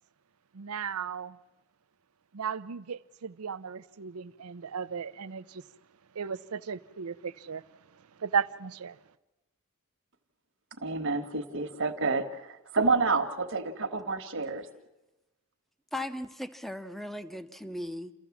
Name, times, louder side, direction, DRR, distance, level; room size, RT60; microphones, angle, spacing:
voice 1, 0.5-1.4 2.3-5.7 6.1-9.0, right 6 dB, 90° right, 0.6 m, -35 dB
voice 2, 10.8-14.7, right 4 dB, 60° right, 1.4 m, -29 dB
voice 3, 15.9-18.1, left 1 dB, ahead, 0.7 m, -37 dB
29.0 x 14.0 x 7.2 m
head